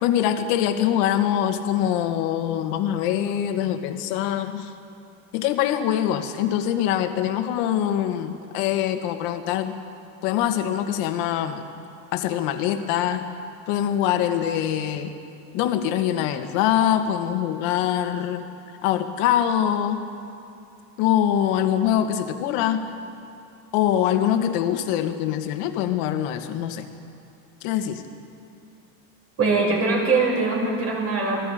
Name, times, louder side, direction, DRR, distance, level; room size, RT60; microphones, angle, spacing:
voice 1, 0.0-4.7 5.3-9.8 10.2-11.6 12.1-13.3 13.7-15.1 15.5-18.5 18.8-20.1 21.0-22.9 23.7-26.9 27.6-28.0, left 10 dB, 65° left, 6 dB, 1.9 m, -23 dB
voice 2, 29.4-31.4, right 3 dB, 35° right, -2 dB, 6.4 m, -22 dB
27.5 x 20.0 x 5.2 m, 2.7 s
cardioid pair, 160°, 40 cm